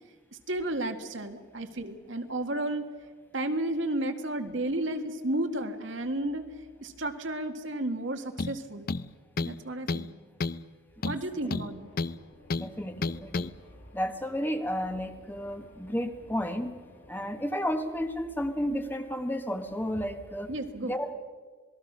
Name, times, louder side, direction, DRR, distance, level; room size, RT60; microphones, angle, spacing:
voice 1, 0.5-2.9 3.3-6.5 6.8-8.9 9.4-10.1 11.0-11.9 20.5-21.0, right 1 dB, 70° right, 6 dB, 1.9 m, -32 dB
sound 1, 8.4-8.6 8.9-9.6 9.9-10.1 10.4-10.6 11.0-12.2 12.5-12.7 13.0-13.5, left 3 dB, 45° left, 0.6 m, -31 dB
sound 2, 11.0-17.5, equal, 70° left, 7.1 m, -56 dB
voice 2, 12.5-13.5 13.9-16.7 17.1-20.5 20.8-21.1, equal, 10° left, 7 dB, 1.2 m, -32 dB
27.5 x 20.0 x 6.1 m, 1.5 s
head